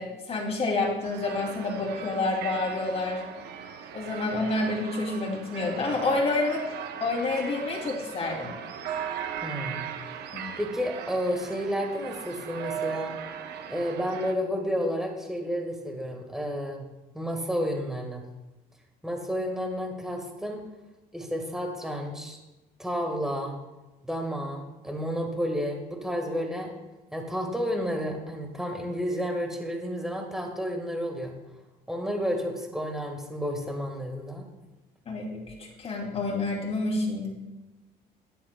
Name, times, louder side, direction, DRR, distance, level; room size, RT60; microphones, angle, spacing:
voice 1, 0.0-3.2 3.9-6.7 7.0-8.5 10.3-10.6 35.1-37.3, left 2 dB, 35° left, -1 dB, 2.6 m, -28 dB
sound 1, 1.0-14.4, right 8 dB, 75° right, 0.8 m, -38 dB
voice 2, 9.4-9.9 10.6-13.1 13.7-16.8 17.1-18.2 19.0-20.6 21.1-22.4 22.8-23.6 24.0-26.7 27.1-31.3 31.9-34.4, equal, 5° right, 2 dB, 1.5 m, -31 dB
10.5 x 10.0 x 2.2 m, 1.1 s
cardioid pair, 110°, 17 cm